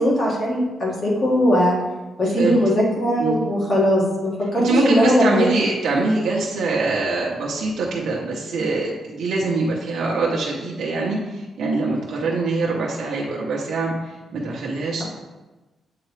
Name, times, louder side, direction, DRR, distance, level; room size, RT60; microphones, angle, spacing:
voice 1, 0.0-1.7 2.2-5.5, equal, 35° left, -5 dB, 1.9 m, -19 dB
voice 2, 4.6-15.0, right 3 dB, 70° right, -4 dB, 0.8 m, -23 dB
7.6 x 3.8 x 3.2 m, 1.1 s
wide cardioid pair, 150°, 0 cm